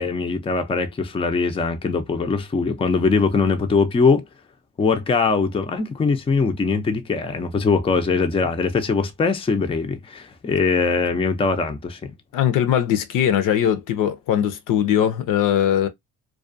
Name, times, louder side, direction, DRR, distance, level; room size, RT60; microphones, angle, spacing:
voice 1, 0.0-4.2 4.8-12.1, left 4 dB, 15° left, 0.5 m, -21 dB
voice 2, 12.3-15.9, left 10 dB, 60° left, 0.6 m, -20 dB
2.4 x 2.3 x 2.5 m
supercardioid pair, 80°, 36 cm